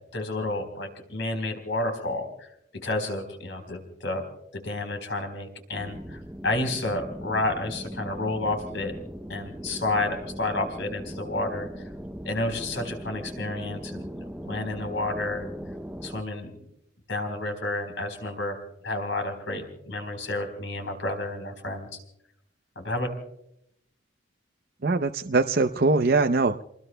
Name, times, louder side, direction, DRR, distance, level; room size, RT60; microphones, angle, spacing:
voice 1, 0.1-4.2 4.5-8.9 9.3-11.7 12.2-15.5 16.0-16.5 17.1-21.9 22.8-23.1, left 2 dB, 65° left, 5 dB, 4.0 m, -30 dB
sound 1, 5.7-16.2, equal, 5° right, 0.7 m, -39 dB
voice 2, 24.8-26.6, right 3 dB, 50° right, 7 dB, 0.6 m, -22 dB
29.0 x 20.5 x 2.2 m, 0.77 s
head